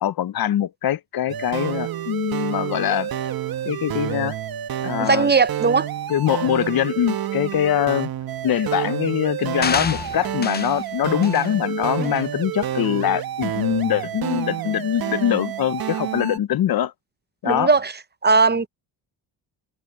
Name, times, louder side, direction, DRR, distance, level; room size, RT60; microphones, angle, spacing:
voice 1, 0.0-3.1 3.6-4.4 4.8-5.3 6.1-8.1 8.4-16.9 17.4-17.7, left 11 dB, 50° left, 0.9 m, -23 dB
sound 1, 1.3-16.4, right 10 dB, 50° right, 1.4 m, -29 dB
voice 2, 5.0-5.9 12.0-12.1 17.4-17.9 18.2-18.7, right 4 dB, 25° right, 0.8 m, -18 dB
sound 2, 9.6-10.8 11.2-11.5 12.0-12.2, left 6 dB, 20° left, 0.5 m, -28 dB
cardioid pair, 100°, 44 cm